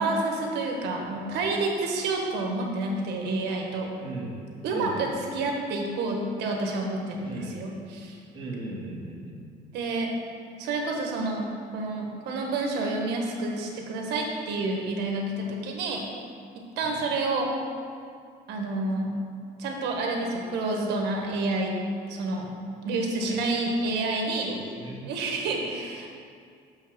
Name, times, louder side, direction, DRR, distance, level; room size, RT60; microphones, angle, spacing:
voice 1, 0.0-3.9 4.6-8.1 9.7-10.1 10.6-16.1 16.8-17.5 18.5-19.1 19.6-21.7 22.1-22.5 22.8-24.5 25.0-26.1, right 2 dB, 85° right, 1 dB, 1.3 m, -29 dB
voice 2, 4.0-5.0 7.2-7.6 8.3-9.4 16.8-17.0 23.2-23.4 24.5-25.1 25.4-25.5, right 2 dB, 30° right, -4 dB, 1.9 m, -38 dB
6.6 x 5.6 x 6.0 m, 2.3 s
cardioid pair, 110°, 17 cm